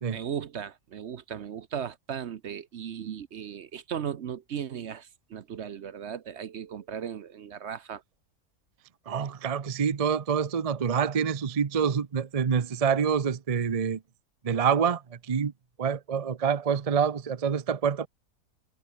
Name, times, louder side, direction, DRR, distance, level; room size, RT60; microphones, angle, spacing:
voice 1, 0.1-8.0, right 8 dB, 55° right, 0.9 m, -37 dB
voice 2, 9.1-14.0 14.4-15.5 15.8-18.1, right 7 dB, 35° right, 0.6 m, -26 dB
omnidirectional pair, 1.6 m